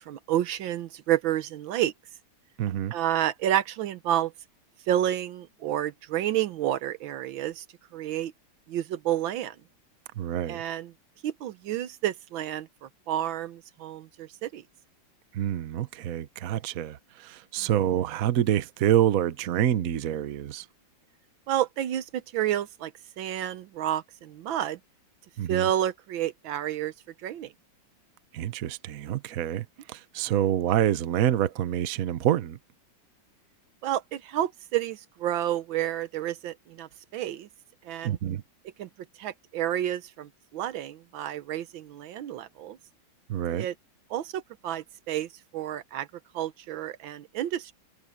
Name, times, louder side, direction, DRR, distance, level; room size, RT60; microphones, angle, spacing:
voice 1, 0.0-1.9 2.9-4.3 4.9-7.6 7.9-8.3 8.7-9.5 10.5-10.9 11.2-14.6 17.6-17.7 21.5-22.9 23.2-24.8 25.5-26.9 27.2-27.5 33.8-37.5 37.8-38.2 38.8-38.9 39.2-42.8 43.5-43.7 44.1-46.1 46.3-47.7, right 12 dB, 80° right, 1.6 m, -30 dB
voice 2, 2.6-2.9 10.2-10.6 15.3-20.6 25.4-25.7 28.3-32.6 38.0-38.4 43.3-43.7, right 11 dB, 55° right, 1.1 m, -27 dB
omnidirectional pair, 2.1 m